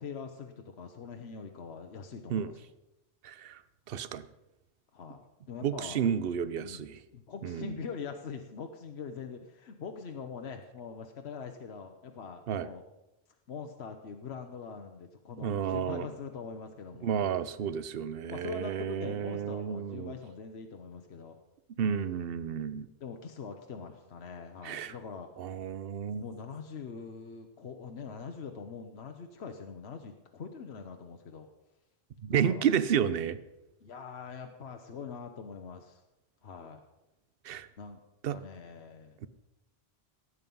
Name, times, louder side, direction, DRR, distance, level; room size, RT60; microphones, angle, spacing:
voice 1, 0.0-2.7 4.9-6.0 6.6-6.9 7.1-12.8 13.5-17.2 18.3-21.4 22.4-25.3 26.1-31.5 32.3-32.6 33.8-36.0 36.4-36.8 37.8-38.0 38.3-39.2, left 5 dB, 75° left, 5 dB, 1.2 m, -43 dB
voice 2, 3.2-3.6 3.9-4.2 5.6-7.0 7.4-7.8 12.5-12.7 15.4-16.1 17.0-20.1 21.8-22.9 24.6-24.9 25.4-26.2 32.2-33.4 37.4-37.7 38.2-38.3, right 8 dB, 65° right, 14 dB, 0.9 m, -31 dB
17.5 x 8.3 x 5.4 m, 0.96 s
omnidirectional pair, 1.1 m